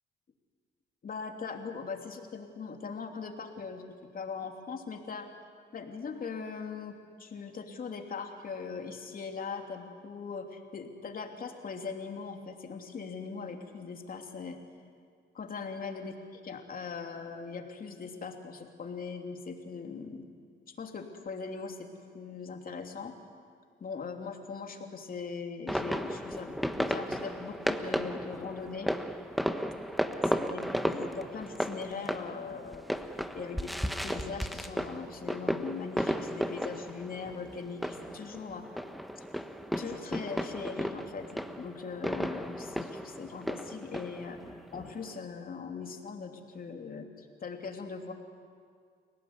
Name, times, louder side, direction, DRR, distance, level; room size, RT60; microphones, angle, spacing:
voice 1, 1.0-3.8 4.1-5.4 5.7-14.6 15.3-20.3 20.7-21.9 22.1-23.2 23.8-28.9 30.3-32.8 33.3-33.7 34.0-38.8 39.2-39.3 39.8-44.4 44.7-48.1, left 5 dB, 45° left, 3 dB, 3.1 m, -40 dB
sound 1, 25.7-45.1, equal, ahead, 1.3 m, -35 dB
30.0 x 18.0 x 9.7 m, 2.1 s
cardioid pair, 90°, 20 cm